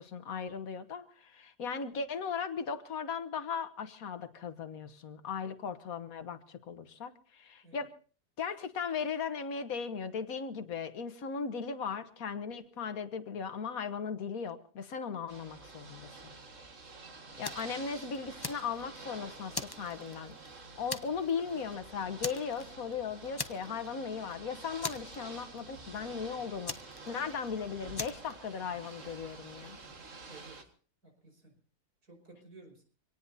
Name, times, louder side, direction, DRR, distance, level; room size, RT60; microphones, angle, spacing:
voice 1, 0.0-7.9 8.4-16.3 17.4-20.4 20.8-26.8 27.1-29.8, left 6 dB, 65° left, 10 dB, 1.7 m, -37 dB
Ocean / Boat Water vehicle, 15.3-30.6, right 3 dB, 55° right, 2.1 m, -49 dB
voice 2, 17.1-17.5 30.3-30.7 31.0-31.6 32.0-32.8, right 3 dB, 70° right, 3 dB, 5.7 m, -56 dB
Fire, 17.4-17.7 18.1-19.1 19.5-20.5 20.9-21.3 21.6-21.7 22.2-22.9 23.4-23.9 24.2-24.3 24.8-25.6 26.7-27.5 27.9-28.3, left 3 dB, 35° left, 0.4 m, -39 dB
25.5 x 18.5 x 2.7 m, 0.41 s
omnidirectional pair, 1.7 m